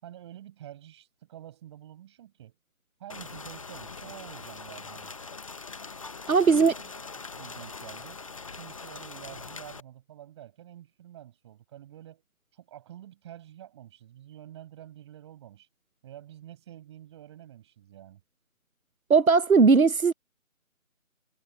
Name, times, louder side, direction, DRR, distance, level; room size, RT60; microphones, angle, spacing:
voice 1, 0.0-2.6 3.0-5.1 6.3-6.9 7.4-12.2 12.5-15.7 16.0-18.2, right 12 dB, 20° right, 7.3 m, -48 dB
Rain, 3.1-9.8, left 4 dB, 25° left, 1.1 m, -42 dB
voice 2, 6.3-6.7 19.1-20.1, right 5 dB, 85° right, 0.9 m, -19 dB
figure-of-eight pair, 160°, 41 cm